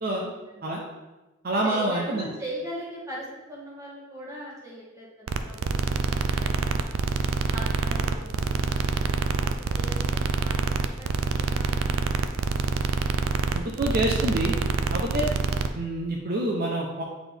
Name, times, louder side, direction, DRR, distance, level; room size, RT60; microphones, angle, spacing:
voice 1, 0.1-0.8 1.6-6.9 7.5-12.7, equal, 15° right, -5 dB, 1.6 m, -41 dB
voice 2, 1.4-2.3 13.5-14.5 14.9-15.3 15.7-17.0, right 1 dB, 50° right, -1 dB, 0.7 m, -27 dB
sound 1, 5.3-15.7, right 4 dB, 90° right, 0.4 m, -26 dB
8.1 x 4.1 x 3.4 m, 1.1 s
head